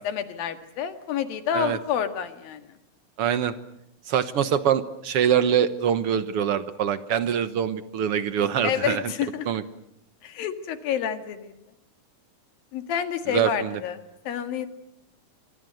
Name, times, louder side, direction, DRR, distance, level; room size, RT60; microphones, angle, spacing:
voice 1, 0.1-2.7 8.6-9.6 10.2-11.6 12.7-14.7, left 8 dB, 90° left, 8 dB, 3.6 m, -29 dB
voice 2, 3.2-3.5 4.1-9.0 9.5-9.6 13.3-13.8, right 8 dB, 65° right, 12 dB, 1.5 m, -24 dB
25.5 x 24.5 x 7.9 m, 0.79 s
omnidirectional pair, 4.0 m